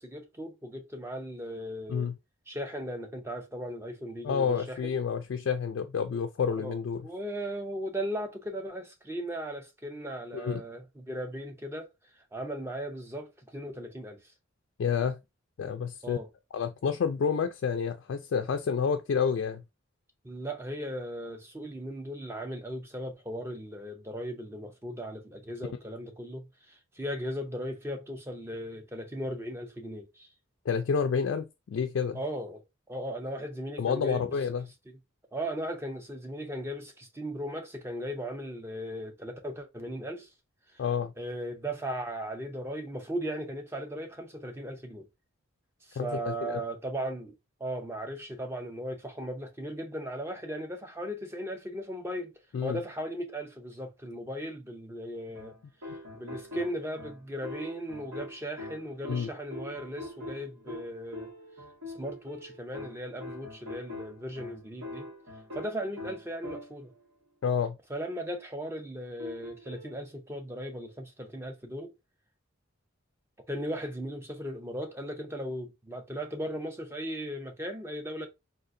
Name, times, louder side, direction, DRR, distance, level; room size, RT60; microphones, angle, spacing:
voice 1, 0.0-2.1 2.5-4.9 6.6-11.9 12.3-14.3 16.0-16.3 20.2-30.3 32.1-32.6 32.9-34.3 34.9-35.0 35.3-40.3 40.7-40.8 41.2-45.1 45.8-47.3 47.6-52.3 52.6-55.5 56.1-61.3 61.8-65.1 65.5-66.9 67.9-71.9 73.5-78.3, equal, 10° right, 0.5 m, -37 dB
voice 2, 4.2-7.1 10.3-10.6 14.8-15.2 15.6-16.2 16.5-19.6 30.7-32.2 33.8-34.7 40.8-41.1 46.0-46.6 52.5-52.8 59.0-59.3 67.4-67.8, left 6 dB, 65° left, 0.3 m, -29 dB
sound 1, 55.3-67.0 69.2-70.0, left 1 dB, 80° right, 1.4 m, -43 dB
3.6 x 2.4 x 2.5 m
head